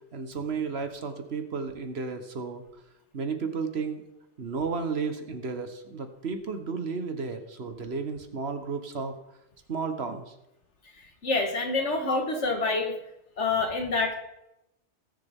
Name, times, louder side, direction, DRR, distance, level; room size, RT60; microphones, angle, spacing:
voice 1, 0.1-2.6 3.1-4.0 4.4-9.1 9.7-10.3 11.8-11.9 12.3-12.4, right 5 dB, 65° right, 7 dB, 1.4 m, -33 dB
voice 2, 11.2-12.9 13.4-14.2, left 3 dB, 85° left, 4 dB, 2.0 m, -26 dB
19.0 x 7.0 x 3.6 m, 0.89 s
omnidirectional pair, 1.2 m